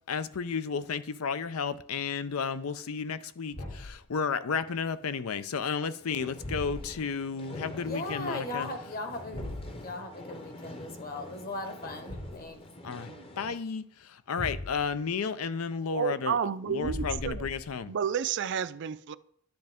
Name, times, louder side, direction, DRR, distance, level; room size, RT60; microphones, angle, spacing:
voice 1, 0.1-8.7 12.8-16.4 16.7-17.9, left 5 dB, 90° left, 0.5 m, -33 dB
Thump thud, 3.5-4.0 6.4-7.1 9.3-9.8 12.1-12.5 14.4-15.0 16.8-17.8, left 1 dB, 70° left, 2.2 m, -38 dB
sound 1, 6.0-13.6, left 1 dB, 25° left, 0.8 m, -46 dB
voice 2, 7.7-9.4 9.7-12.7, left 2 dB, 45° left, 1.3 m, -38 dB
voice 3, 15.9-17.5 17.9-19.2, right 7 dB, 55° right, 0.4 m, -31 dB
12.0 x 7.8 x 3.6 m
head